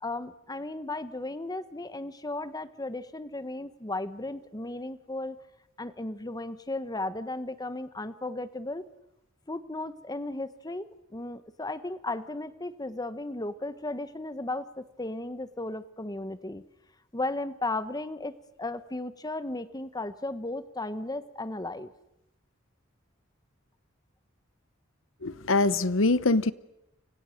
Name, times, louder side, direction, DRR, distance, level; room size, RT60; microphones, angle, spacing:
voice 1, 0.0-5.4 5.8-8.8 9.5-16.6 17.1-21.9, left 2 dB, 20° left, 1.2 m, -35 dB
voice 2, 25.2-26.5, left 2 dB, 70° left, 1.0 m, -23 dB
30.0 x 24.0 x 6.5 m
head